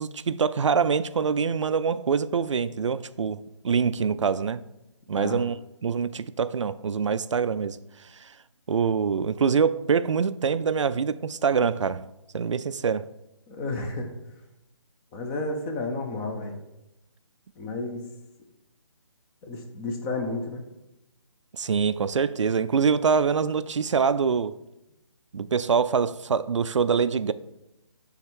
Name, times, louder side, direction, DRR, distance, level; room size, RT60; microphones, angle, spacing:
voice 1, 0.0-4.6 5.1-5.6 5.8-7.8 8.2-8.3 8.7-12.1 12.3-13.0 21.5-24.5 25.3-27.3, right 6 dB, 75° right, 0.4 m, -24 dB
voice 2, 13.5-14.1 15.1-16.6 17.6-18.1 19.4-20.7, left 2 dB, 10° left, 0.5 m, -31 dB
7.5 x 3.5 x 4.6 m
figure-of-eight pair, 150°, 16 cm